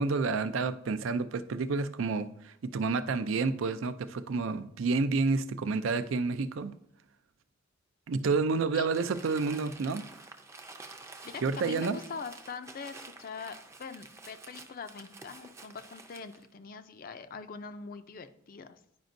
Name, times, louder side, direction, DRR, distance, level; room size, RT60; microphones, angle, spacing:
voice 1, 0.0-6.7 8.1-10.0 11.4-12.0, right 4 dB, 75° right, 0.4 m, -29 dB
Crumpling crinkling, 8.9-16.5, right 3 dB, 15° right, 0.5 m, -49 dB
voice 2, 11.2-18.8, left 5 dB, 45° left, 0.4 m, -43 dB
10.5 x 5.1 x 2.6 m
head